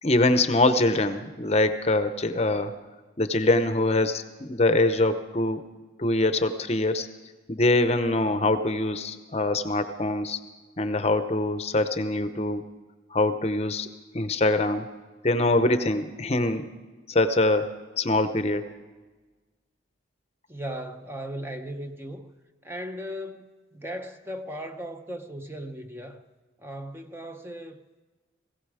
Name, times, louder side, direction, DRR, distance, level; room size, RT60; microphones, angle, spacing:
voice 1, 0.0-2.7 3.2-5.6 6.0-7.1 7.5-10.4 10.8-12.6 13.1-13.9 14.1-14.9 15.2-16.7 17.1-17.7 18.0-18.6, left 2 dB, 35° left, 0.7 m, -24 dB
voice 2, 20.5-22.3 22.6-26.2 26.6-27.8, equal, 10° right, 0.6 m, -37 dB
18.5 x 16.0 x 4.9 m
head